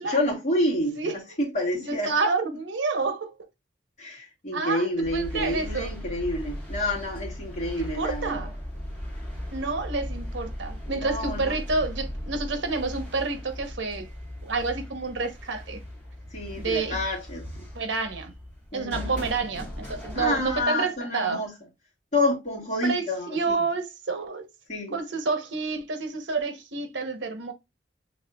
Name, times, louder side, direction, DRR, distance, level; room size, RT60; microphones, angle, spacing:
voice 1, 0.0-2.1 4.0-8.4 10.9-11.6 16.3-17.7 18.7-19.1 20.1-21.5 22.1-23.7 24.7-25.0, left 1 dB, 40° left, 2.0 m, -29 dB
voice 2, 1.8-3.3 4.5-5.9 7.8-8.5 9.5-14.1 14.4-15.8 16.6-17.0 17.7-18.3 18.7-21.4 22.8-24.5 24.9-27.5, right 4 dB, 85° right, 1.0 m, -29 dB
sound 1, 5.0-20.6, equal, 5° left, 2.2 m, -37 dB
6.4 x 3.4 x 2.4 m
head